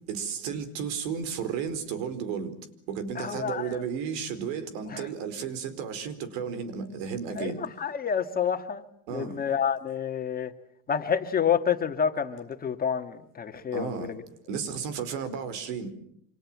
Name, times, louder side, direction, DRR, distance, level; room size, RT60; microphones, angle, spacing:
voice 1, 0.1-2.5 2.9-7.6 9.1-9.4 13.7-14.1 14.5-15.9, right 6 dB, 85° right, 4.7 m, -33 dB
voice 2, 3.2-3.7 4.9-5.1 7.4-8.8 9.1-10.5 10.9-14.2, left 7 dB, 25° left, 1.9 m, -28 dB
29.0 x 26.5 x 7.5 m
cardioid pair, 150°, 38 cm